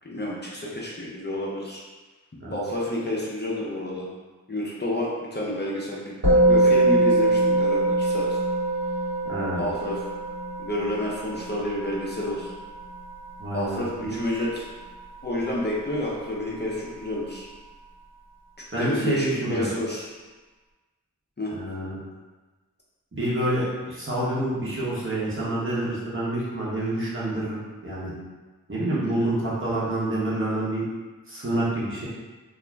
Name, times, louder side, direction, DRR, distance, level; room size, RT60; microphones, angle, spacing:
voice 1, 0.0-1.8 2.5-4.1 4.5-8.4 9.6-10.0 10.6-12.5 13.5-14.7 15.2-17.5 18.8-20.1 21.4-21.5 29.0-29.3, left 1 dB, 30° left, -5 dB, 0.5 m, -30 dB
Musical instrument, 6.2-15.8, right 2 dB, 65° right, 1.4 m, -24 dB
voice 2, 9.2-9.6 13.4-14.2 18.7-19.7 21.5-22.0 23.1-28.1 28.7-30.8 31.3-32.1, right 1 dB, 40° right, -8 dB, 0.9 m, -27 dB
2.4 x 2.0 x 3.2 m, 1.3 s
wide cardioid pair, 45°, 33 cm